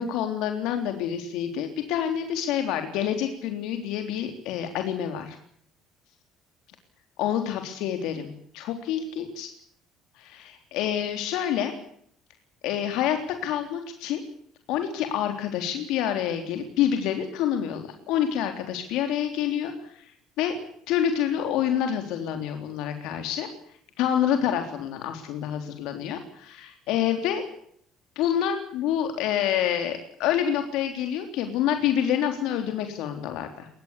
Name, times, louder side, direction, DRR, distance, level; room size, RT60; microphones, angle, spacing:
voice 1, 0.0-5.4 7.2-9.5 10.2-11.7 12.6-14.2 14.7-20.6 20.9-23.5 24.0-27.4 28.2-33.7, left 9 dB, 75° left, 6 dB, 3.6 m, -27 dB
23.5 x 19.5 x 8.4 m, 0.65 s
cardioid pair, 160°, 0 cm